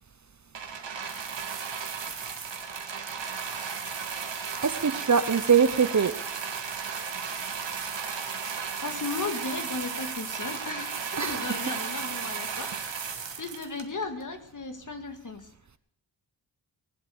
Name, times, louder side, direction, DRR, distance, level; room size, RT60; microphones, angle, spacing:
sound 1, 0.5-14.2 15.0-15.1, right 6 dB, 75° right, 1.9 m, -35 dB
voice 1, 4.6-6.1 11.2-11.4, right 6 dB, 40° right, 0.8 m, -22 dB
voice 2, 8.8-15.5, left 3 dB, 45° left, 2.1 m, -36 dB
18.5 x 8.0 x 7.9 m
wide cardioid pair, 80°, 44 cm